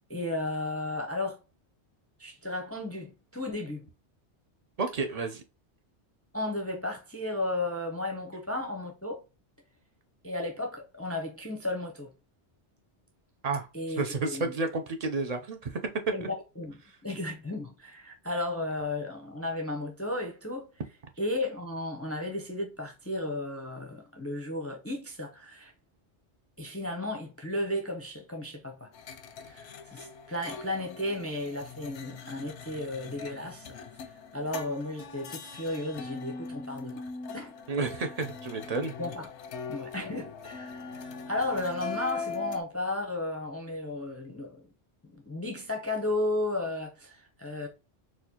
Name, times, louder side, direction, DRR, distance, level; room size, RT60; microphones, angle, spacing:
voice 1, 0.1-1.4 2.2-3.9 6.3-9.2 10.2-12.1 13.7-14.5 16.1-20.7 21.2-25.7 26.6-28.9 29.4-33.8 34.3-37.1 37.3-37.5 39.0-39.3 39.7-44.7 45.0-47.7, left 2 dB, 20° left, 0.5 m, -34 dB
voice 2, 4.8-5.4 13.4-15.8 16.2-16.3 37.7-38.9, right 3 dB, 50° right, 0.5 m, -31 dB
sound 1, 28.9-42.6, left 5 dB, 85° left, 0.9 m, -41 dB
4.2 x 2.4 x 2.7 m
omnidirectional pair, 1.2 m